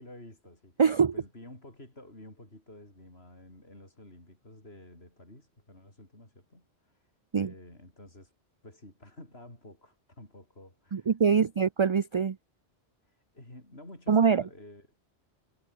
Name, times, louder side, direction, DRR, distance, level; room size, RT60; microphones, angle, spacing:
voice 1, 0.0-0.8 1.1-8.3 8.6-11.5 13.0-14.9, left 1 dB, 65° left, 7.3 m, -51 dB
voice 2, 0.8-1.1 7.3-7.5 10.9-12.4 14.1-14.4, right 6 dB, 40° right, 0.5 m, -23 dB
omnidirectional pair, 1.1 m